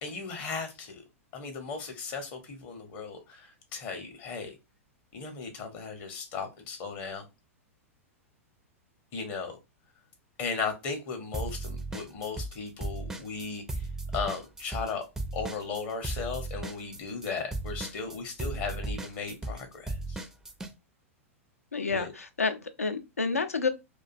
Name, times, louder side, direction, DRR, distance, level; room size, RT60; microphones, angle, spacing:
voice 1, 0.0-1.0 1.3-4.6 5.1-7.3 9.1-9.5 10.4-13.9 14.1-15.0 15.3-20.2 21.9-22.1, left 5 dB, 40° left, 0.6 m, -36 dB
sound 1, 11.3-12.6 12.8-20.7, right 2 dB, 5° right, 0.4 m, -35 dB
voice 2, 21.7-23.7, left 4 dB, 85° left, 0.4 m, -29 dB
2.4 x 2.2 x 2.4 m
figure-of-eight pair, 100°, 8 cm